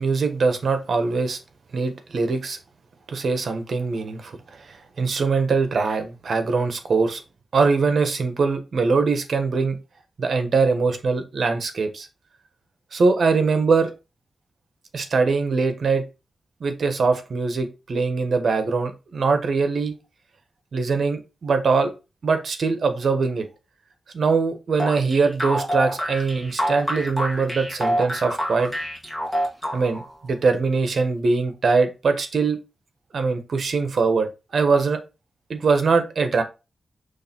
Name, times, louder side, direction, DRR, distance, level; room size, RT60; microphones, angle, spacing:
voice 1, 0.0-1.4 1.7-2.6 3.1-7.2 7.5-9.8 10.2-12.1 12.9-13.9 14.9-16.0 16.6-19.9 20.7-21.9 22.2-23.5 24.1-28.7 29.7-32.6 33.1-35.0 35.5-36.4, right 4 dB, 65° right, 1.2 m, -22 dB
sound 1, 24.8-30.1, equal, ahead, 2.0 m, -27 dB
6.4 x 3.3 x 4.4 m
wide cardioid pair, 110°, 0 cm